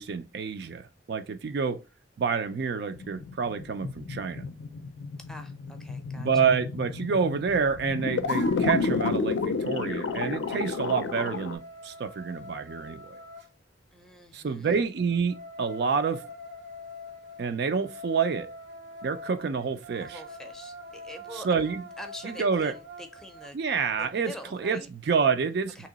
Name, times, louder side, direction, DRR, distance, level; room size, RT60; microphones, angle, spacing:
voice 1, 0.0-1.8 2.2-4.4 6.2-13.2 14.3-16.2 17.4-18.5 19.0-20.2 21.4-21.8 22.2-22.7 23.5-24.3 24.6-25.9, right 5 dB, 60° right, 0.4 m, -28 dB
sound 1, 2.9-11.5, left 4 dB, 75° left, 0.4 m, -31 dB
voice 2, 5.3-6.5 13.9-14.7 20.0-21.5 22.0-23.6 24.0-24.9 25.8-25.9, equal, 5° left, 0.5 m, -45 dB
sound 2, 8.3-8.9 9.3-13.5 15.0-23.5, left 1 dB, 75° right, 0.9 m, -45 dB
3.0 x 2.9 x 3.8 m
head